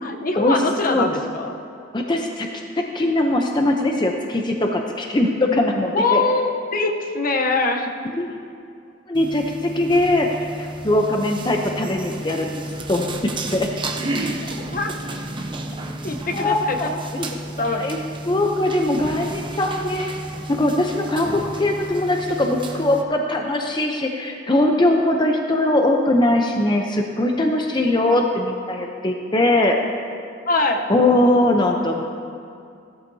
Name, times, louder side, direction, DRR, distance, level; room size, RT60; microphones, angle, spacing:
voice 1, 0.0-1.5 5.9-7.9 14.5-15.0 16.0-17.0 17.4-18.0 30.5-30.8, left 3 dB, 50° left, 4 dB, 0.8 m, -23 dB
voice 2, 1.9-2.5 2.8-6.2 8.2-8.3 9.1-12.5 12.9-13.1 13.5-13.7 16.3-17.3 17.7-18.0 18.3-20.1 20.5-29.8 30.9-32.0, left 1 dB, 25° left, 2 dB, 0.7 m, -21 dB
sound 1, 9.1-23.0, right 2 dB, 25° right, 0.7 m, -32 dB
16.5 x 12.5 x 2.8 m, 2.4 s
head